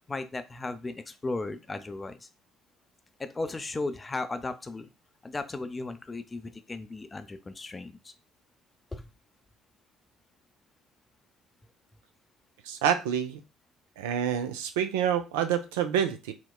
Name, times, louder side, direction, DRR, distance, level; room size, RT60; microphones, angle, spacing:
voice 1, 0.1-2.3 3.2-4.9 5.2-8.1 8.9-9.1, left 3 dB, 25° left, 10 dB, 0.5 m, -36 dB
voice 2, 12.6-13.4 14.0-16.3, right 9 dB, 80° right, 8 dB, 0.3 m, -27 dB
4.1 x 2.1 x 2.3 m, 0.28 s
hypercardioid pair, 55°, 0 cm